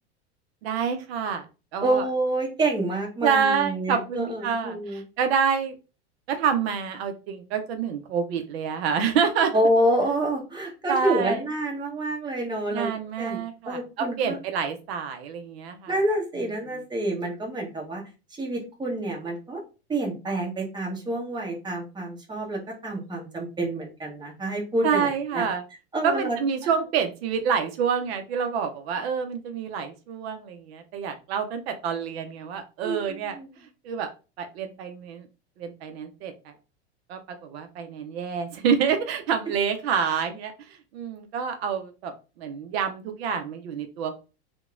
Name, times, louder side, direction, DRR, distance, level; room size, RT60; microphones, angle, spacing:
voice 1, 0.6-1.5 1.7-2.0 3.2-5.7 6.3-9.6 10.9-11.4 12.7-15.9 24.8-25.6 26.0-34.1 34.4-35.3 35.6-36.5 37.1-44.2, right 6 dB, 65° right, 7 dB, 0.5 m, -27 dB
voice 2, 1.8-5.0 9.5-12.9 13.2-13.4 13.7-14.4 15.9-18.0 18.4-19.6 19.9-25.5 25.9-26.4 32.8-33.5, right 1 dB, 15° right, 0 dB, 0.9 m, -27 dB
2.8 x 2.1 x 2.4 m, 0.32 s
hypercardioid pair, 100°, 33 cm